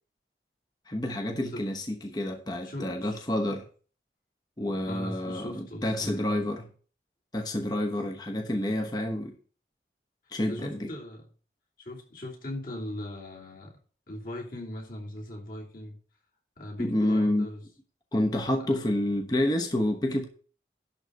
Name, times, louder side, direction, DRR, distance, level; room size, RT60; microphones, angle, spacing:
voice 1, 0.9-3.7 4.6-6.7 7.3-9.4 10.3-10.9 16.8-17.5 18.1-20.3, left 1 dB, 25° left, 1.0 m, -28 dB
voice 2, 2.6-3.2 4.9-6.5 10.5-11.3 11.8-13.8 14.1-16.0 16.6-17.6 18.7-18.8, left 1 dB, 50° left, 3.1 m, -39 dB
11.5 x 4.0 x 7.8 m
head